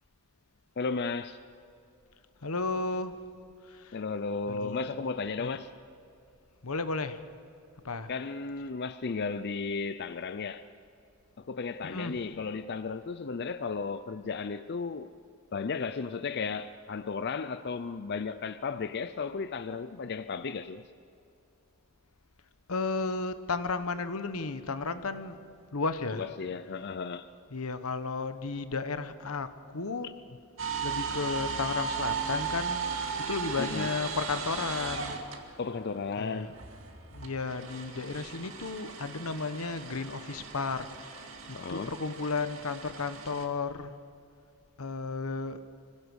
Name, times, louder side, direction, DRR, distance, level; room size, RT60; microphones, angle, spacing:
voice 1, 0.8-1.4 3.9-5.7 8.1-10.6 11.4-15.1 15.5-20.8 26.1-27.3 30.0-30.1 33.6-33.9 35.6-36.6 41.5-41.9, left 4 dB, 50° left, 0.5 m, -34 dB
voice 2, 2.4-3.2 3.6-4.0 4.5-4.9 5.4-5.6 6.6-7.2 7.8-8.1 11.8-12.2 22.7-25.4 25.7-26.3 27.5-30.1 30.8-32.8 33.2-35.2 36.2-36.5 37.1-43.9 44.8-45.6, left 4 dB, 85° left, 1.1 m, -33 dB
sound 1, 30.6-35.8 36.2-43.4, right 5 dB, 70° right, 2.2 m, -36 dB
25.0 x 16.5 x 6.4 m
head